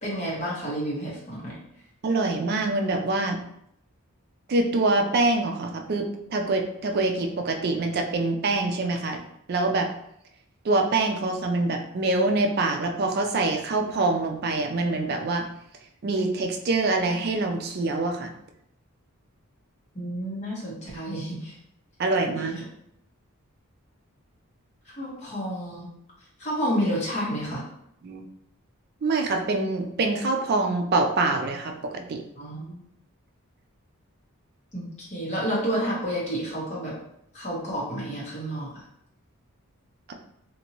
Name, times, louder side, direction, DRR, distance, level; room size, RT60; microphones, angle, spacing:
voice 1, 0.0-1.6 19.9-21.5 22.3-22.6 25.0-25.9 26.4-27.6 32.3-32.8 34.7-37.0 37.3-38.8, equal, 30° left, -7 dB, 1.2 m, -30 dB
voice 2, 2.0-3.4 4.5-9.2 9.5-9.9 10.6-15.4 16.0-18.3 22.0-22.5 28.0-28.3 29.0-32.2, right 2 dB, 45° right, 3 dB, 0.4 m, -25 dB
2.9 x 2.6 x 2.8 m, 0.74 s
head